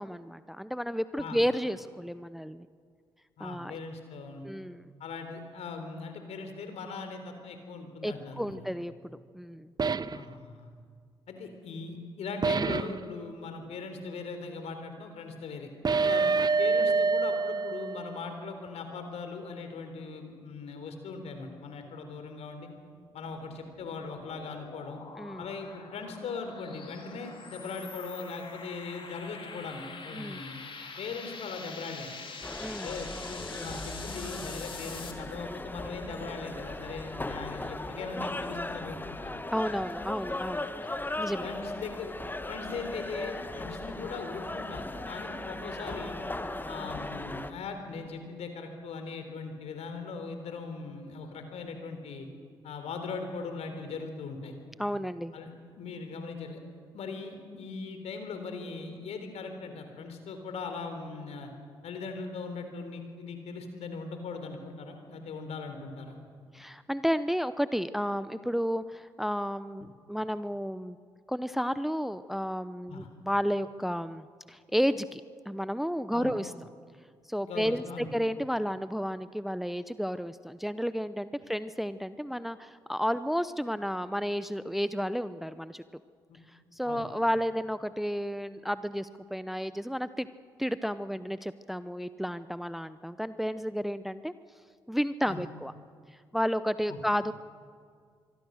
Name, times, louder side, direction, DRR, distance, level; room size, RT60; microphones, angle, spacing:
voice 1, 0.0-2.7 3.4-3.8 4.4-4.9 8.0-8.9 9.3-9.7 25.2-25.5 30.1-30.4 32.6-32.9 39.5-40.7 41.2-41.5 54.8-55.3 66.5-71.0 71.3-75.2 75.5-76.5 77.3-85.8 86.7-90.3 90.6-94.3 94.9-95.7 96.3-97.3, equal, ahead, 14 dB, 0.8 m, -32 dB
voice 2, 3.4-4.4 5.0-8.7 10.1-10.7 11.3-15.7 16.0-16.2 16.6-22.7 23.1-25.0 25.4-30.6 31.0-32.1 32.8-39.3 41.4-42.1 42.5-46.2 46.7-52.3 52.6-54.6 55.3-56.6 56.9-61.5 61.8-66.2 72.9-73.1 76.1-76.3 77.4-78.1 86.3-86.4 86.9-87.1 95.3-95.4 96.9-97.0, left 4 dB, 60° left, 6 dB, 3.8 m, -40 dB
sound 1, 9.8-10.2 12.4-13.0 15.8-18.3, right 4 dB, 35° right, 0.8 m, -26 dB
sound 2, 23.1-35.1, left 4 dB, 45° left, 3.6 m, -45 dB
sound 3, 32.4-47.5, left 2 dB, 15° left, 1.7 m, -38 dB
25.0 x 23.5 x 6.5 m, 2.1 s
hypercardioid pair, 40°, 12 cm